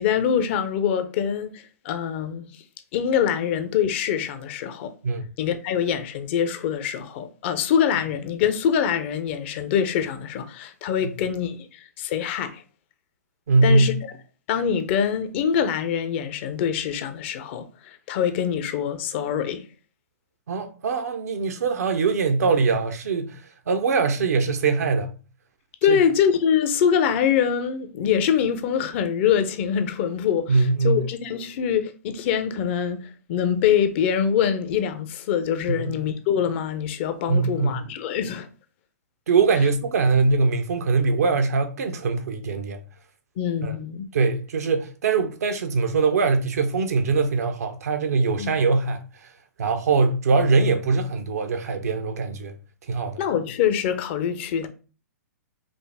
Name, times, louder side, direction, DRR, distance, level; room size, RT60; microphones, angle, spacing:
voice 1, 0.0-2.6 2.9-4.9 5.4-12.6 13.6-13.9 14.5-19.6 25.8-38.5 43.4-44.1 48.4-48.5 53.2-54.7, left 8 dB, 45° left, 0.6 m, -24 dB
voice 2, 13.5-13.9 20.5-23.4 23.7-25.1 25.9-26.0 30.5-31.0 35.7-35.9 37.3-37.8 39.3-42.8 43.6-43.7 44.1-49.0 49.6-52.5 52.9-53.2, right 4 dB, 70° right, 0.8 m, -22 dB
5.1 x 2.0 x 3.4 m
hypercardioid pair, 120°, 9 cm